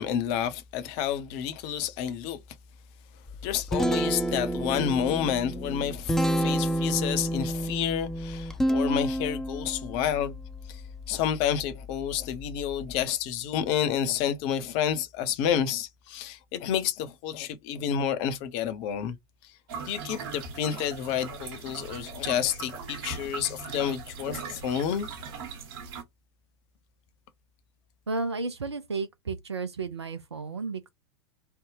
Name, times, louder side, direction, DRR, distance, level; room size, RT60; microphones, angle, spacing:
voice 1, 0.0-2.4 3.4-10.4 10.7-10.8 11.1-19.2 19.8-25.1, left 9 dB, 45° left, 0.7 m, -29 dB
Guitar, 3.3-13.0, equal, 5° left, 0.5 m, -30 dB
sound 1, 19.7-26.0, right 5 dB, 55° right, 1.1 m, -39 dB
voice 2, 28.1-30.9, right 3 dB, 85° right, 0.6 m, -33 dB
3.3 x 2.2 x 3.2 m
figure-of-eight pair, 90°, 14 cm